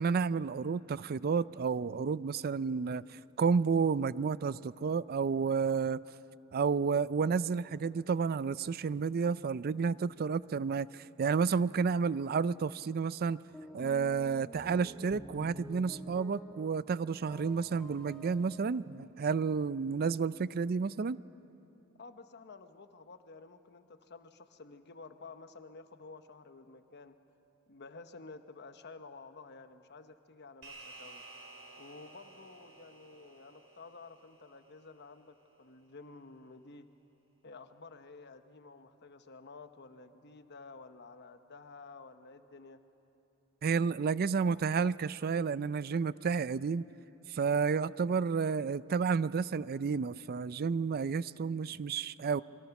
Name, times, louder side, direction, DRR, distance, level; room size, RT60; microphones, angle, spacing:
voice 1, 0.0-6.0 6.5-13.4 13.7-21.2 43.6-46.9 47.3-52.4, right 5 dB, 45° right, 18 dB, 0.4 m, -31 dB
sound 1, 13.5-16.9 17.1-18.6, right 1 dB, 5° left, 2.0 m, -50 dB
voice 2, 22.0-27.2 27.7-31.2 31.8-36.9 37.4-42.8, left 3 dB, 55° left, 9 dB, 1.0 m, -52 dB
sound 2, 30.6-35.3, right 3 dB, 65° right, 3.8 m, -54 dB
27.0 x 23.0 x 5.9 m, 3.0 s
head